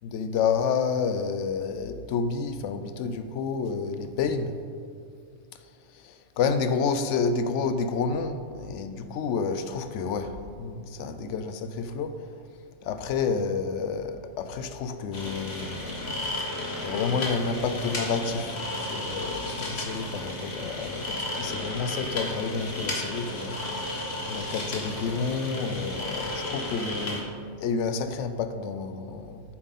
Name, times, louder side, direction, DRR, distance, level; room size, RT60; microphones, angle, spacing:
voice 1, 0.0-4.5 5.9-12.3 12.8-16.2 16.8-23.6 24.3-27.3 27.6-29.4, left 5 dB, 80° left, 9 dB, 0.9 m, -30 dB
sound 1, 15.1-27.2, left 1 dB, 60° left, 1.6 m, -33 dB
8.9 x 7.4 x 4.1 m, 2.2 s
omnidirectional pair, 1.2 m